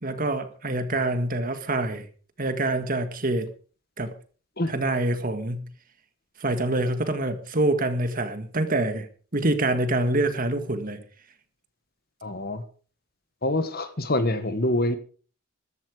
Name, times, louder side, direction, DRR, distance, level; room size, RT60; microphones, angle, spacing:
voice 1, 0.0-2.1 2.4-3.5 4.0-4.1 4.7-5.7 6.4-9.1 9.3-11.0, right 2 dB, 40° right, 1.9 m, -26 dB
voice 2, 12.2-12.6 13.4-15.0, left 1 dB, 45° left, 1.5 m, -25 dB
14.0 x 12.5 x 5.0 m
head